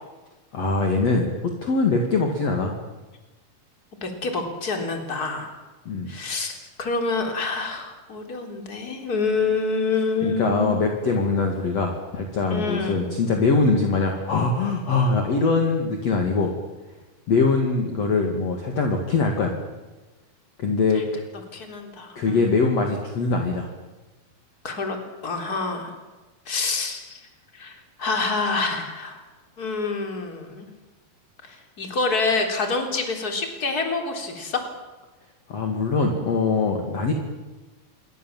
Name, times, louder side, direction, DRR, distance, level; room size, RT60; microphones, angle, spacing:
voice 1, 0.5-2.7 5.8-6.1 10.2-16.5 17.3-19.5 20.6-21.2 22.2-23.7 35.5-37.1, left 3 dB, 45° left, 2 dB, 3.2 m, -22 dB
voice 2, 4.0-5.5 6.1-6.5 6.8-10.8 12.5-13.0 21.5-22.5 24.6-25.0 25.2-26.0 26.5-27.2 27.5-29.2 29.6-30.7 31.4-34.6, left 3 dB, 25° left, 4 dB, 3.8 m, -27 dB
27.5 x 23.0 x 7.5 m, 1.2 s
omnidirectional pair, 4.6 m